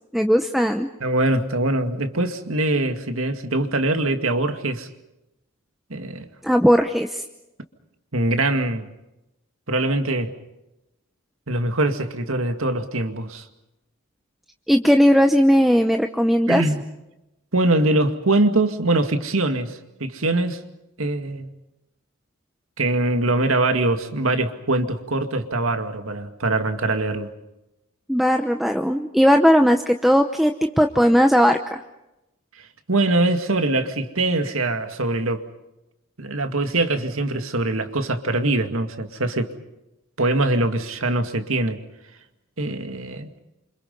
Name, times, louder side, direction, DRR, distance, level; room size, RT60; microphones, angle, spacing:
voice 1, 0.1-0.9 6.4-7.2 14.7-16.6 28.1-31.8, equal, ahead, 5 dB, 0.8 m, -18 dB
voice 2, 1.0-4.9 5.9-6.3 8.1-8.9 9.7-10.3 11.5-13.5 16.5-16.8 17.5-20.6 21.0-21.5 22.8-27.3 32.9-35.5 36.2-39.5 40.2-41.8 42.6-43.3, right 2 dB, 75° right, 7 dB, 2.1 m, -23 dB
28.5 x 26.5 x 5.4 m, 0.94 s
head